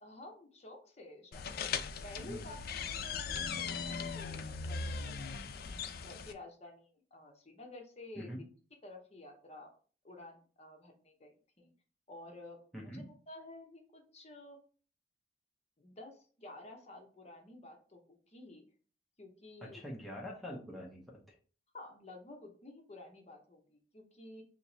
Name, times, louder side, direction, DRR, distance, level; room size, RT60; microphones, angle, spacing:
voice 1, 0.0-5.1 5.7-8.3 8.8-9.7 10.0-11.7 12.1-14.6 15.8-18.6 19.2-19.8 21.7-24.4, left 2 dB, 35° left, 2 dB, 0.8 m, -52 dB
sound 1, 1.3-6.3, left 5 dB, 55° left, 0.3 m, -39 dB
voice 2, 12.7-13.1 19.6-21.3, equal, ahead, -4 dB, 0.7 m, -44 dB
2.9 x 2.8 x 4.0 m, 0.40 s
head